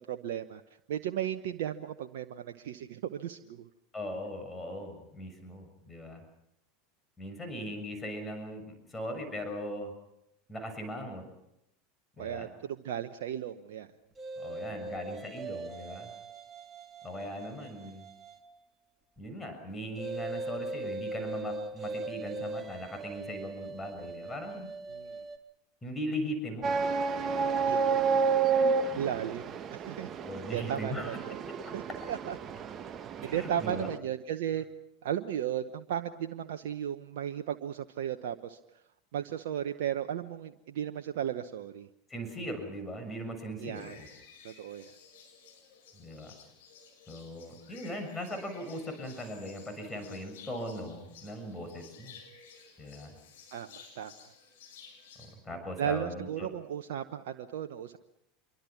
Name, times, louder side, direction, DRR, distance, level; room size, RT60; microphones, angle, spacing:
voice 1, 0.1-0.6 0.9-3.7 12.2-13.9 24.9-25.2 27.6-28.2 29.0-30.1 30.5-31.4 31.7-31.8 32.1-32.4 33.2-34.6 35.0-38.6 39.1-41.9 43.6-44.0 44.4-44.9 53.5-54.3 55.8-58.0, right 10 dB, 65° right, 7 dB, 0.9 m, -35 dB
voice 2, 3.9-6.2 7.2-9.9 10.5-11.2 12.2-12.5 14.4-16.1 17.0-18.0 19.2-24.7 25.8-26.7 27.3-27.7 28.9-29.1 30.2-31.4 33.2-33.9 42.1-44.1 45.9-46.3 47.1-52.1 52.8-53.1 55.2-56.5, equal, 15° left, 5 dB, 6.7 m, -39 dB
sound 1, 14.2-18.6 20.0-25.4, right 2 dB, 20° right, 3.0 m, -40 dB
sound 2, 26.6-34.0, right 5 dB, 35° right, 1.3 m, -30 dB
sound 3, 43.7-55.3, left 6 dB, 70° left, 7.3 m, -54 dB
26.5 x 23.5 x 6.0 m, 0.80 s
hypercardioid pair, 80°, 0 cm